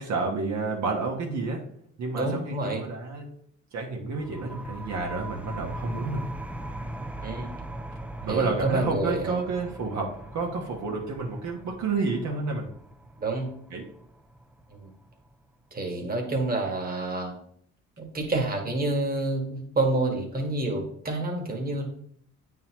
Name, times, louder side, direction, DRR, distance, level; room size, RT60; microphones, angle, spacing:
voice 1, 0.0-1.6 2.0-3.3 3.7-6.2 8.2-12.7 13.7-13.9, right 3 dB, 65° right, 0 dB, 1.2 m, -30 dB
voice 2, 2.2-2.8 7.2-7.5 8.3-9.4 13.2-13.5 14.8-14.9 15.7-17.3 18.0-21.9, right 2 dB, 30° right, 2 dB, 1.5 m, -28 dB
sound 1, 4.1-15.5, right 1 dB, 5° right, 0.4 m, -40 dB
8.9 x 4.0 x 3.0 m, 0.64 s
cardioid pair, 90°, 30 cm